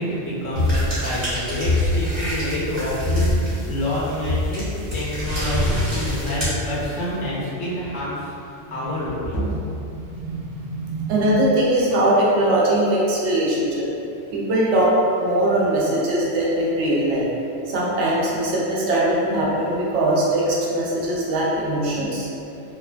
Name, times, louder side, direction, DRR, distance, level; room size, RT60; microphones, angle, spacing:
voice 1, 0.0-9.5, equal, 90° left, -8 dB, 1.2 m, -28 dB
sound 1, 0.5-7.2, left 1 dB, 35° right, 1.2 m, -24 dB
voice 2, 9.9-13.9 14.3-14.9 15.2-17.3 17.7-22.3, right 1 dB, 75° right, -5 dB, 0.9 m, -21 dB
3.0 x 2.2 x 2.4 m, 2.7 s
omnidirectional pair, 1.3 m